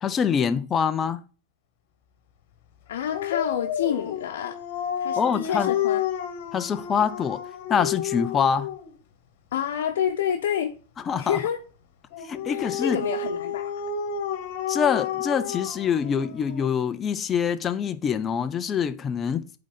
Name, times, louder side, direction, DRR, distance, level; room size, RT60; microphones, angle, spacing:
voice 1, 0.0-1.2 5.1-5.7 6.5-7.4 7.7-8.7 11.1-11.4 12.2-13.0 14.7-19.6, left 7 dB, 20° left, 0.5 m, -25 dB
voice 2, 2.9-4.6 5.0-6.0 9.5-10.8 11.2-11.6 12.5-13.7, left 9 dB, 80° left, 0.8 m, -28 dB
Dog, 3.1-8.9 12.1-16.7, left 8 dB, 60° left, 1.3 m, -30 dB
8.5 x 3.8 x 4.0 m
supercardioid pair, 145°, 0 cm